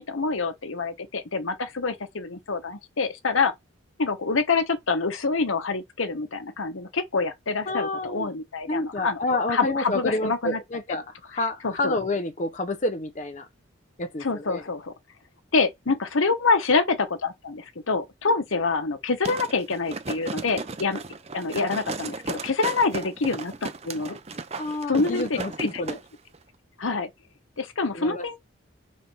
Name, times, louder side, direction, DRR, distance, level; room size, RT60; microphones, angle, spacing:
voice 1, 0.0-3.5 4.0-9.2 9.5-10.6 10.9-11.0 11.6-12.0 14.2-14.9 15.5-21.0 21.3-24.2 24.9-25.8 26.8-27.1 27.6-28.4, left 4 dB, 75° left, 1.0 m, -26 dB
voice 2, 7.7-8.3 8.7-13.5 14.0-14.6 24.6-26.0 27.9-28.4, left 2 dB, 35° left, 0.6 m, -29 dB
sound 1, 19.2-26.0 26.3-26.4, right 3 dB, 30° right, 0.6 m, -35 dB
4.5 x 4.1 x 5.4 m
head